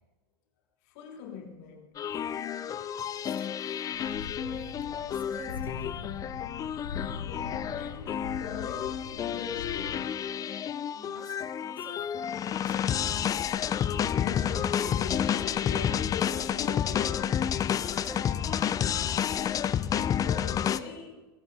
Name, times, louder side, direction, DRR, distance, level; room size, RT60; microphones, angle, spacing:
voice 1, 0.9-2.2 7.1-10.1 14.0-17.5 20.2-21.3, left 6 dB, 55° left, 3.3 m, -41 dB
sound 1, 2.0-20.8, left 9 dB, 30° left, 0.7 m, -30 dB
voice 2, 3.2-5.9 10.6-13.5 17.9-19.3, right 2 dB, 15° right, 4.7 m, -50 dB
sound 2, 3.9-10.0, left 6 dB, 70° left, 2.2 m, -41 dB
23.5 x 13.5 x 4.1 m
figure-of-eight pair, 80°, 13 cm